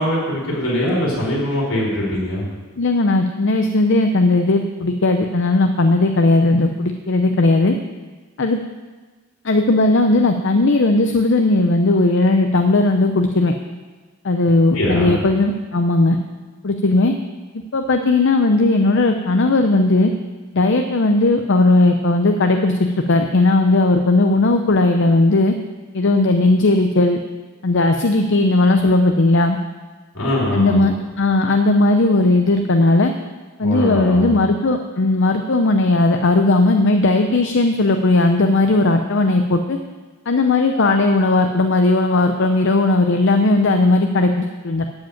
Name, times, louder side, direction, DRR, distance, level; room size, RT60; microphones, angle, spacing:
voice 1, 0.0-2.4 14.7-15.2 30.1-30.9 33.6-34.3, left 1 dB, 75° left, -4 dB, 4.6 m, -21 dB
voice 2, 2.8-7.8 8.4-8.6 9.4-13.5 14.2-16.2 16.6-17.1 17.7-20.1 20.5-25.5 25.9-27.2 27.6-29.6 30.5-33.1 33.6-39.8 40.3-44.9, left 2 dB, 55° left, 5 dB, 0.6 m, -16 dB
13.5 x 5.1 x 8.6 m, 1.3 s
head